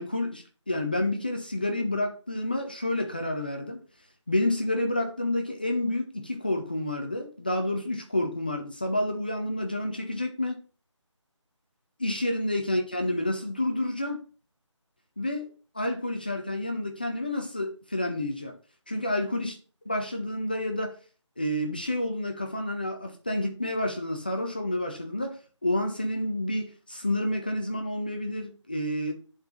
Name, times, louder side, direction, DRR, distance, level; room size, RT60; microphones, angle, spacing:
voice 1, 0.0-3.8 4.3-10.6 12.0-14.2 15.2-15.5 15.7-18.5 18.9-19.6 19.9-20.9 21.4-29.1, left 1 dB, 20° left, 0.5 m, -29 dB
11.0 x 4.0 x 2.4 m
figure-of-eight pair, 165°, 16 cm